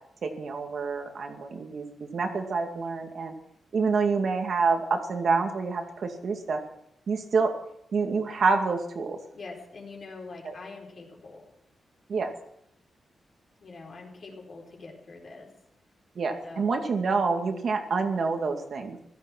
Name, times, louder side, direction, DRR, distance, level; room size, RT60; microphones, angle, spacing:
voice 1, 0.2-1.9 2.1-3.3 3.7-6.6 7.1-7.5 7.9-9.2 10.5-10.6 12.1-12.3 16.2-19.0, right 4 dB, 60° right, 4 dB, 2.3 m, -27 dB
voice 2, 9.3-11.5 13.6-15.5 16.4-16.8, left 3 dB, 55° left, 0 dB, 4.5 m, -44 dB
16.0 x 13.0 x 6.1 m, 0.74 s
wide cardioid pair, 110°, 0 cm